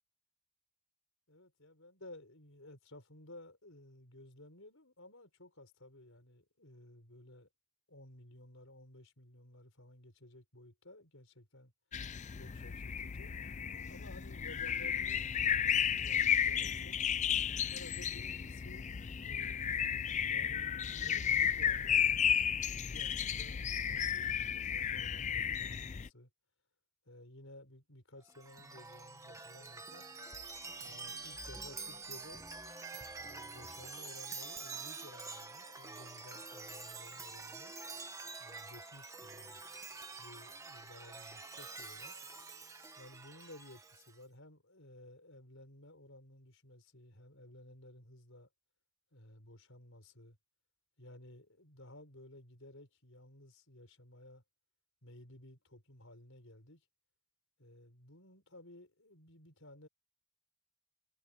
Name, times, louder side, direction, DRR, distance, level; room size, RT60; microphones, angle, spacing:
voice 1, 1.3-7.5 7.9-11.7 12.4-13.3 13.9-17.0 17.7-18.9 19.2-19.7 20.3-26.3 27.1-30.1 30.8-32.4 33.2-37.7 38.4-39.6 40.2-42.2 43.0-48.5 49.1-50.4 51.0-54.4 55.0-56.8 57.6-59.9, left 1 dB, 65° left, 7.0 m, -55 dB
sound 1, 11.9-26.1, left 8 dB, 35° left, 0.4 m, -33 dB
Chime, 28.3-44.2, right 3 dB, 15° right, 1.7 m, -47 dB
head